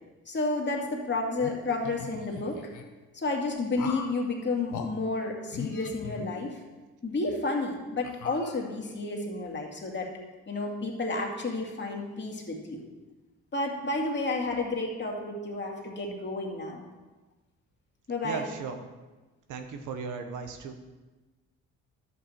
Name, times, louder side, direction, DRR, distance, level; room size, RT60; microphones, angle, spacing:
voice 1, 0.3-2.6 3.1-6.6 7.0-10.1 10.5-12.8 13.5-16.8 18.1-18.5, left 2 dB, 35° left, 0 dB, 2.3 m, -31 dB
sound 1, 1.4-2.8 3.8-4.2 4.7-4.9 5.5-6.8 7.2-7.4 8.0-9.0, left 7 dB, 80° left, 1.1 m, -40 dB
voice 2, 18.2-18.8 19.5-20.7, right 5 dB, 80° right, 6 dB, 1.2 m, -36 dB
11.0 x 8.3 x 4.4 m, 1.2 s
cardioid pair, 90°, 30 cm